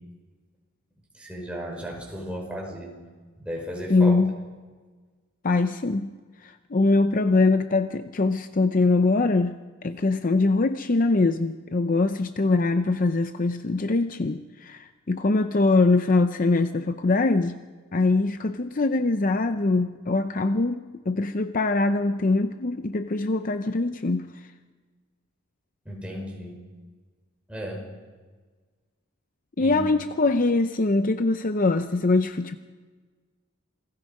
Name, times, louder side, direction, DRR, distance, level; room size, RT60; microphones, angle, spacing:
voice 1, 1.1-2.9 3.4-4.2 25.9-26.6 27.5-27.9 29.6-29.9, equal, 5° right, -1 dB, 5.4 m, -35 dB
voice 2, 3.9-4.3 5.4-6.1 6.4-9.6 9.8-17.6 17.9-24.3 29.6-32.6, left 3 dB, 40° left, 9 dB, 0.6 m, -23 dB
28.0 x 18.5 x 5.3 m, 1.4 s
head